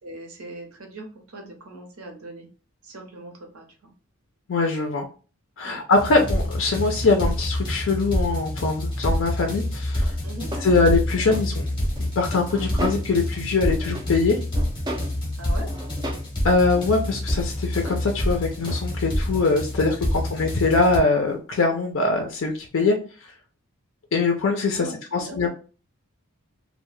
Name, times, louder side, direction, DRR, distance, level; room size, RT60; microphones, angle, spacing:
voice 1, 0.0-2.5 2.8-3.9 5.6-5.8 10.2-10.5 15.4-15.7 24.7-25.4, right 1 dB, 80° right, 2 dB, 0.8 m, -40 dB
voice 2, 4.5-5.1 5.6-10.1 10.6-11.6 12.2-14.4 16.4-23.0 24.1-25.5, left 3 dB, 60° left, 2 dB, 0.4 m, -22 dB
sound 1, 5.9-21.0, left 1 dB, 20° left, 0.7 m, -27 dB
sound 2, 9.9-11.5 11.9-13.3 13.5-14.2 14.5-15.2 15.5-16.3 16.6-18.1 18.6-18.9 19.2-19.7 20.2-20.3 22.8-22.9, equal, 20° right, 0.3 m, -36 dB
2.2 x 2.1 x 3.0 m, 0.36 s
head